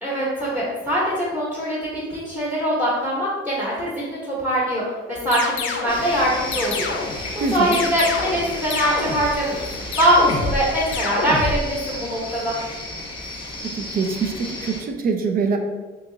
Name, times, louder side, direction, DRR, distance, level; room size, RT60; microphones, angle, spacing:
voice 1, 0.0-4.8 5.1-6.9 7.5-12.5, equal, 5° right, -7 dB, 0.9 m, -22 dB
sound 1, 5.3-6.0 6.5-7.2 7.7-8.5 8.7-9.3 9.9-10.6 10.9-11.6, left 4 dB, 70° left, 0.5 m, -26 dB
sound 2, 5.9-14.8, left 2 dB, 25° left, 0.7 m, -33 dB
voice 2, 7.4-7.8 13.7-15.6, right 5 dB, 45° right, 5 dB, 0.4 m, -24 dB
2.9 x 2.3 x 3.7 m, 1.3 s
cardioid pair, 130°, 21 cm